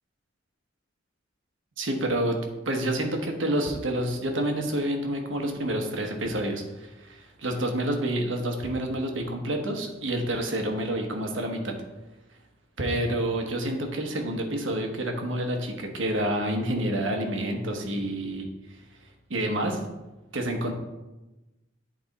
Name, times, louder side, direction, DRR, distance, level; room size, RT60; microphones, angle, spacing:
voice 1, 1.8-2.4 2.7-11.7 12.8-18.5 19.3-19.8 20.3-20.7, right 1 dB, 70° right, 3 dB, 1.1 m, -28 dB
8.7 x 4.2 x 4.1 m, 1.0 s
head